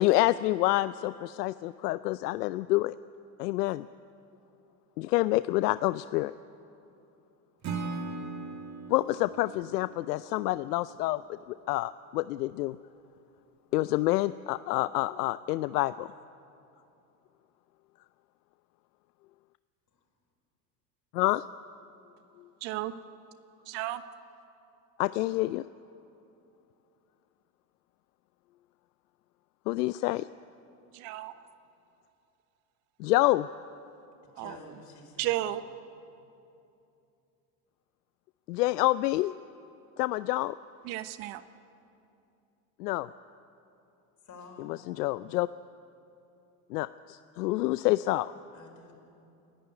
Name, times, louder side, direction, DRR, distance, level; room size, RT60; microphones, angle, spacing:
voice 1, 0.0-3.0 3.4-3.9 5.0-6.3 8.9-12.8 13.7-16.1 21.1-21.4 25.0-25.6 29.7-30.3 33.0-33.5 38.5-39.3 40.0-40.6 42.8-43.1 44.7-45.5 46.7-48.3, left 18 dB, 85° left, 15 dB, 0.6 m, -27 dB
Acoustic guitar / Strum, 7.6-10.8, right 3 dB, 35° right, 2.3 m, -39 dB
voice 2, 22.6-22.9 23.7-24.0 30.9-31.3 34.4-34.5 35.2-35.6 40.8-41.4, right 15 dB, 65° right, 12 dB, 1.1 m, -33 dB
voice 3, 34.2-35.4 44.2-44.8 48.5-48.9, left 4 dB, 40° left, -1 dB, 5.7 m, -50 dB
29.0 x 11.0 x 9.9 m, 2.7 s
supercardioid pair, 100°, 46 cm